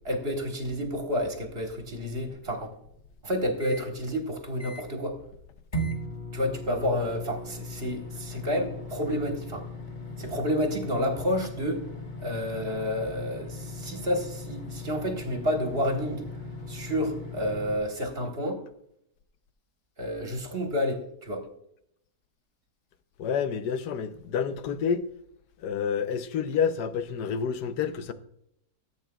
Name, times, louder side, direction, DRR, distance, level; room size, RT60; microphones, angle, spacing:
voice 1, 0.0-2.7 3.2-5.2 6.3-9.6 10.2-11.8 12.2-16.2 16.7-18.6 20.0-21.4, equal, 40° right, 1.6 m, -30 dB
sound 1, 2.1-3.8 4.3-4.4 4.6-5.1 5.7-17.8, left 1 dB, 30° left, 1.6 m, -38 dB
voice 2, 23.2-25.0 25.6-28.1, left 7 dB, 90° left, 1.3 m, -28 dB
14.0 x 8.3 x 2.3 m
omnidirectional pair, 1.7 m